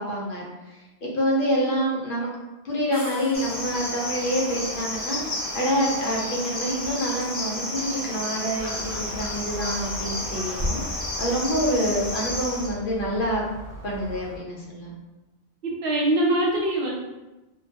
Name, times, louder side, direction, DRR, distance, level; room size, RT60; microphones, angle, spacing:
voice 1, 0.0-2.3 2.6-13.4 13.8-14.9, equal, 60° left, -3 dB, 0.8 m, -27 dB
sound 1, 2.9-4.0, equal, 15° right, 0.4 m, -40 dB
Cricket, 3.3-12.7, left 1 dB, 45° left, 0.5 m, -31 dB
Gull seagull, 8.6-14.4, equal, 85° left, 1.1 m, -37 dB
voice 2, 15.6-16.9, right 1 dB, 65° right, -3 dB, 0.8 m, -23 dB
2.3 x 2.2 x 2.7 m, 1.0 s
omnidirectional pair, 1.1 m